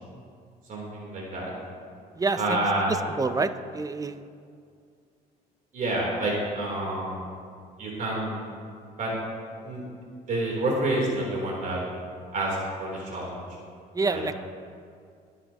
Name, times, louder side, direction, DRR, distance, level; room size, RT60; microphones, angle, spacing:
voice 1, 0.7-1.5 2.4-2.9 5.7-7.2 7.8-8.4 8.9-9.1 9.6-9.8 10.3-11.8 12.3-13.4 14.1-14.2, right 1 dB, 50° right, -3 dB, 3.6 m, -28 dB
voice 2, 2.2-2.6 3.2-4.2 14.0-14.3, right 3 dB, 20° right, 11 dB, 0.6 m, -27 dB
21.0 x 9.8 x 3.0 m, 2.3 s
cardioid pair, 110°, 17 cm